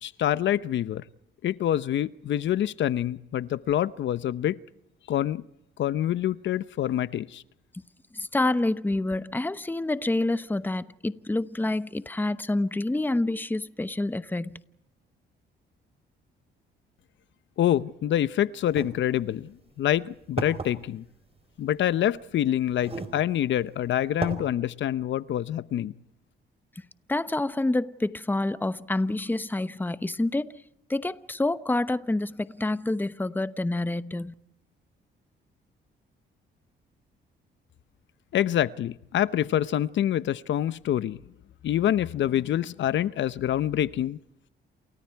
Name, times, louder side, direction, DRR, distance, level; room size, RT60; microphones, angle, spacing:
voice 1, 0.0-1.0 1.4-4.6 5.1-5.4 5.8-7.4 17.6-19.5 19.8-21.0 21.6-25.9 38.3-41.2 41.6-44.2, left 11 dB, 70° left, 0.9 m, -26 dB
voice 2, 8.1-14.6 27.1-30.6 30.9-34.3, left 2 dB, 10° left, 1.0 m, -27 dB
sound 1, 18.7-18.9 19.7-19.8 20.4-20.7 21.9-22.0 22.8-23.2 23.6-23.7 24.2-24.4, right 3 dB, 30° right, 4.4 m, -32 dB
29.0 x 28.0 x 4.7 m
cardioid pair, 90°, 20 cm